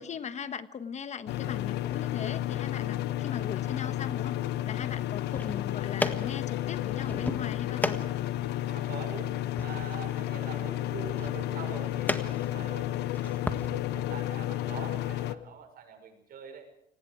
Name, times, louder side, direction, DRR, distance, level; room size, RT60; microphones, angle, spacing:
voice 1, 0.0-8.1, left 7 dB, 45° left, 12 dB, 1.2 m, -39 dB
sound 1, 1.3-15.4, left 13 dB, 80° left, 1.1 m, -32 dB
sound 2, 5.2-13.7, left 2 dB, 10° left, 1.6 m, -37 dB
voice 2, 8.7-12.9 13.2-16.7, right 7 dB, 60° right, 5 dB, 6.1 m, -44 dB
28.5 x 19.5 x 5.0 m, 0.76 s
cardioid pair, 110°, 17 cm